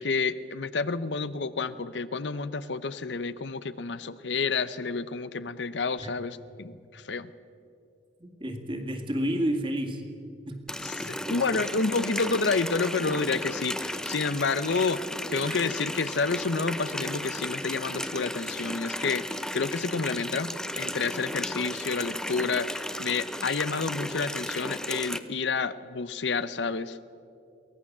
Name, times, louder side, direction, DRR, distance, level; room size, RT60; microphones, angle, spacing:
voice 1, 0.0-7.3 10.8-15.0 15.3-27.0, left 4 dB, 85° left, 14 dB, 0.7 m, -29 dB
voice 2, 8.2-10.0 10.5-10.6 11.0-11.6 15.4-15.7, equal, 30° right, 5 dB, 2.0 m, -31 dB
Water tap faucet, 10.7-25.2, left 1 dB, 5° left, 0.7 m, -35 dB
23.0 x 18.0 x 7.3 m, 2.6 s
head